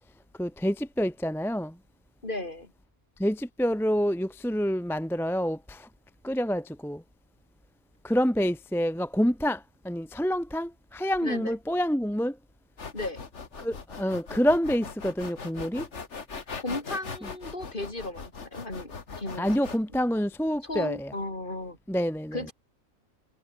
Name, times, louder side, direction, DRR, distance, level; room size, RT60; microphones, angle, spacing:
voice 1, 0.4-1.7 3.2-5.9 6.2-7.0 8.0-12.4 13.6-15.8 19.4-21.1 21.9-22.5, equal, ahead, 0.6 m, -27 dB
voice 2, 2.2-2.7 11.2-11.5 12.9-13.2 16.6-19.5 20.6-21.8 22.3-22.5, left 2 dB, 35° left, 4.6 m, -35 dB
sound 1, 12.8-19.8, left 4 dB, 55° left, 2.3 m, -40 dB
omnidirectional pair, 1.4 m